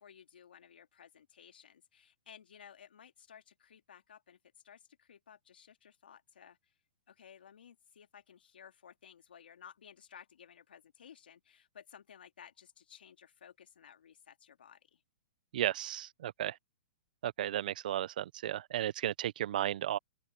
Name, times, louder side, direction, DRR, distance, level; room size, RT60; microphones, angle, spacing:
voice 1, 0.0-4.4 4.6-6.7 7.1-15.0, left 8 dB, 85° left, 3.3 m, -57 dB
voice 2, 15.5-16.6 17.2-20.0, right 12 dB, 60° right, 0.7 m, -34 dB
open air
hypercardioid pair, 160°, 5 cm